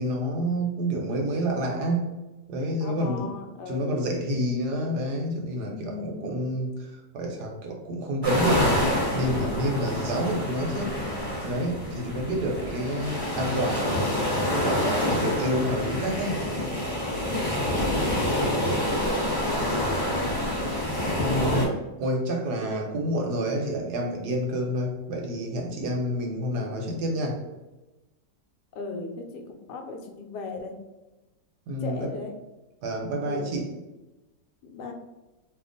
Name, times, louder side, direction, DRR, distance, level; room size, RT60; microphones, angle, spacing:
voice 1, 0.0-2.0 2.5-3.2 3.7-10.9 11.4-14.0 14.5-16.4 21.1-21.7 22.0-27.4 31.7-32.1 32.8-33.6, right 1 dB, 70° right, 1 dB, 1.1 m, -28 dB
voice 2, 2.8-4.4 5.7-6.3 12.2-12.6 15.0-15.4 17.2-17.7 18.8-20.0 28.7-30.7 31.8-32.3 33.2-33.7 34.6-34.9, left 4 dB, 75° left, 3 dB, 1.1 m, -37 dB
sound 1, 8.2-21.7, left 1 dB, 30° left, 1.3 m, -27 dB
2.8 x 2.3 x 3.8 m, 1.1 s
omnidirectional pair, 1.9 m